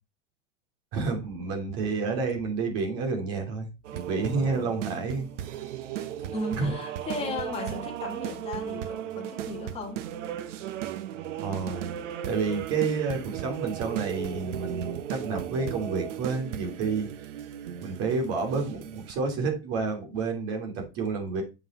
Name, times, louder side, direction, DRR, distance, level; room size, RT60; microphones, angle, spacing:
voice 1, 0.9-3.7 4.1-5.3 6.2-6.3 6.6-6.7 11.4-11.9 12.3-17.1 17.8-21.4, right 4 dB, 40° right, 3.0 m, -29 dB
sound 1, 3.8-19.1, right 11 dB, 90° right, 1.0 m, -36 dB
voice 2, 4.4-4.8 5.9-10.1, left 3 dB, 15° left, 2.0 m, -36 dB
7.5 x 5.8 x 4.2 m
supercardioid pair, 165°, 35 cm